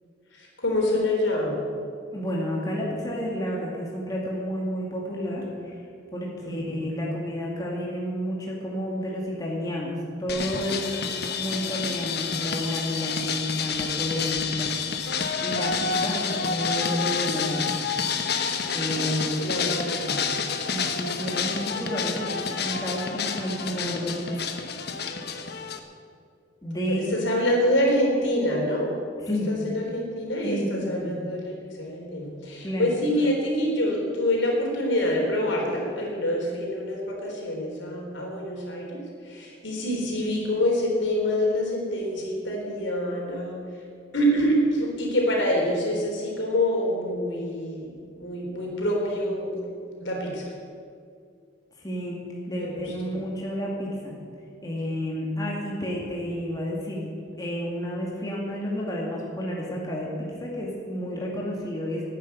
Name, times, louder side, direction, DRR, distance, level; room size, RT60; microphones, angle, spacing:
voice 1, 0.3-1.6 6.4-6.8 19.4-20.3 26.9-28.9 29.3-43.6 44.1-49.6 50.0-50.5 52.5-53.2, left 1 dB, 80° left, -1 dB, 3.9 m, -26 dB
voice 2, 2.1-5.8 6.1-10.8 11.4-14.7 15.4-17.6 18.7-19.3 20.7-24.5 26.6-27.0 29.2-29.6 30.4-31.1 32.6-33.0 51.8-52.2 52.5-54.1 54.6-57.1 57.4-62.1, equal, 20° left, -3 dB, 2.3 m, -30 dB
sound 1, 10.3-25.8, left 6 dB, 60° left, 1.1 m, -29 dB
11.5 x 9.6 x 9.3 m, 2.2 s
head